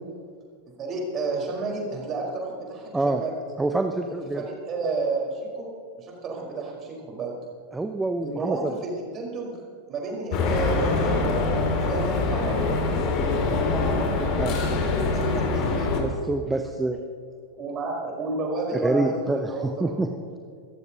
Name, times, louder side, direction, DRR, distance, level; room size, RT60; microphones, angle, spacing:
voice 1, 0.8-3.3 4.3-5.7 6.0-7.3 8.2-9.6 9.9-11.3 11.7-12.6 14.9-16.0 17.6-20.1, right 3 dB, 30° right, -1 dB, 4.8 m, -31 dB
voice 2, 3.6-4.4 7.7-8.8 14.4-14.6 16.0-17.0 18.8-20.1, right 2 dB, 10° right, 6 dB, 0.8 m, -26 dB
sound 1, 10.3-16.0, left 3 dB, 40° left, 2.7 m, -24 dB
25.0 x 15.0 x 3.0 m, 2.2 s
figure-of-eight pair, 90°, 0 cm